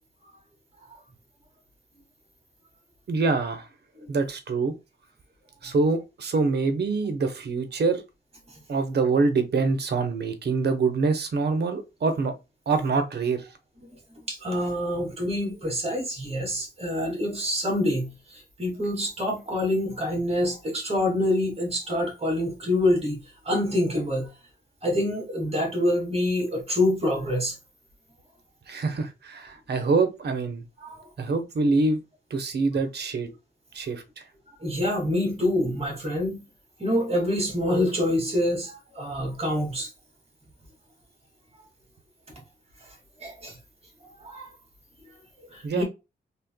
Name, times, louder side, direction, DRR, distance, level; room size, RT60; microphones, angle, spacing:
voice 1, 3.1-3.7 4.1-4.7 5.6-8.0 8.7-12.3 12.7-13.5 28.7-30.6 31.2-32.0 32.3-33.3 33.7-34.2 45.6-45.8, right 4 dB, 60° right, 0.9 m, -25 dB
voice 2, 14.3-23.2 23.5-24.3 24.8-27.5 30.8-31.0 34.6-36.4 36.8-39.9 43.2-43.6 44.2-44.5 45.5-45.8, left 1 dB, 30° right, 2.2 m, -26 dB
4.3 x 3.5 x 2.2 m
cardioid pair, 80°, 19 cm